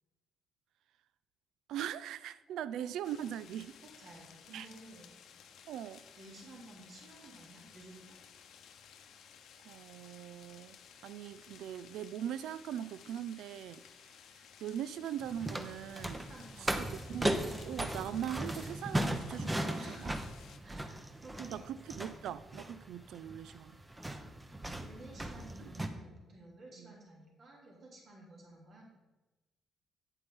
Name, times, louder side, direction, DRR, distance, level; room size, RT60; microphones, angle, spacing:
voice 1, 1.7-3.8 4.5-4.7 5.7-6.0 9.6-10.8 11.0-13.8 14.6-16.2 16.6-20.1 21.4-23.8 25.7-25.8 26.8-27.0, right 10 dB, 85° right, 0.3 m, -41 dB
sound 1, 3.0-20.6, left 8 dB, 80° left, 0.8 m, -57 dB
voice 2, 4.0-5.1 6.2-8.2 16.2-16.8 19.7-20.2 20.6-21.8 24.8-28.8, right 2 dB, 55° right, 3.0 m, -53 dB
sound 2, 15.2-25.9, right 1 dB, 15° right, 0.8 m, -37 dB
9.1 x 7.9 x 3.7 m
cardioid pair, 90°, 0 cm